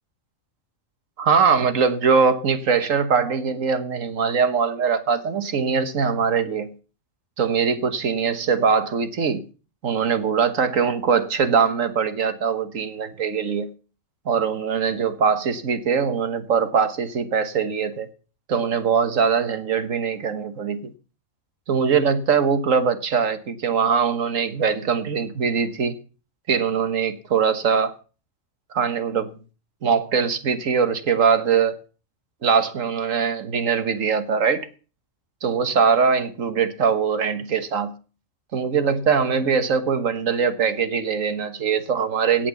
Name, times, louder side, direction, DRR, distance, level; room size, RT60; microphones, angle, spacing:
voice 1, 1.2-6.7 7.4-9.4 9.8-13.7 14.2-18.1 18.5-20.9 21.7-26.0 26.5-27.9 28.7-29.3 29.8-31.8 32.4-34.7 35.4-37.9 38.5-42.5, right 6 dB, 85° right, 1.7 m, -22 dB
17.5 x 6.0 x 7.1 m
omnidirectional pair, 1.3 m